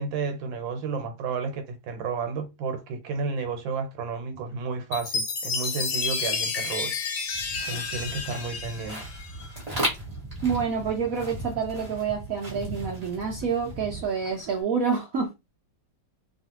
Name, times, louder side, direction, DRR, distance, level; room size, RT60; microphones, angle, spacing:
voice 1, 0.0-6.9 7.7-9.1, right 5 dB, 85° right, 1.5 m, -32 dB
Chime, 4.9-9.5, left 5 dB, 65° left, 1.0 m, -30 dB
sound 1, 7.3-14.6, right 1 dB, 25° right, 1.2 m, -36 dB
voice 2, 10.4-15.3, right 6 dB, 60° right, 0.9 m, -28 dB
3.1 x 2.4 x 2.9 m
omnidirectional pair, 2.0 m